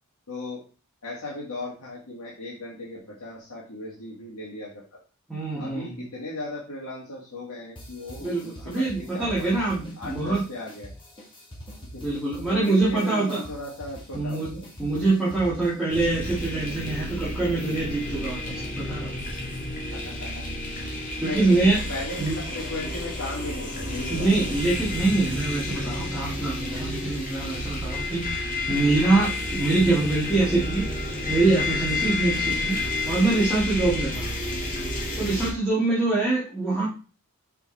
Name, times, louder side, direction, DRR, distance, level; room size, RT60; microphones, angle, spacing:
voice 1, 0.3-0.6 1.0-5.0 5.6-9.5 10.0-10.9 11.9-12.0 12.5-14.7 19.9-20.5 21.2-24.5, left 2 dB, 80° left, -4 dB, 2.1 m, -37 dB
voice 2, 5.3-6.1 8.2-10.4 12.0-13.4 14.1-19.2 21.2-21.8 22.2-22.4 24.1-30.9 31.3-32.8 33.1-34.3 35.1-36.9, right 3 dB, ahead, -9 dB, 2.4 m, -24 dB
sound 1, 7.8-15.9, equal, 20° left, 2.1 m, -43 dB
sound 2, 15.9-35.5, left 2 dB, 40° left, 2.2 m, -30 dB
6.0 x 5.6 x 4.2 m, 0.35 s
head